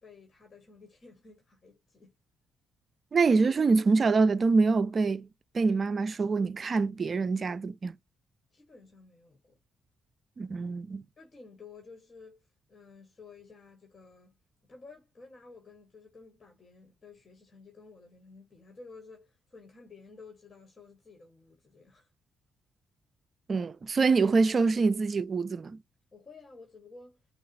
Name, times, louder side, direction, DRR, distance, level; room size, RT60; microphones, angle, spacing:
voice 1, 0.0-2.1 8.5-9.6 11.2-12.4 12.7-22.1 26.1-27.2, left 4 dB, 40° left, 1.6 m, -53 dB
voice 2, 3.1-5.3 5.5-8.0 10.4-11.0 23.5-25.8, right 4 dB, 45° right, 0.4 m, -25 dB
5.5 x 2.4 x 2.6 m
hypercardioid pair, 40°, 0 cm